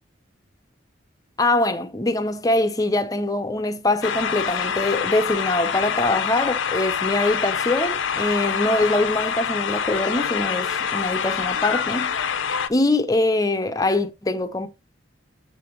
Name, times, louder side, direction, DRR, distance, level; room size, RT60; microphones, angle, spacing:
voice 1, 1.4-12.1 12.7-14.7, left 2 dB, 20° left, 0.6 m, -23 dB
sound 1, 4.0-12.7, left 7 dB, 80° left, 0.6 m, -26 dB
7.6 x 3.5 x 4.4 m
head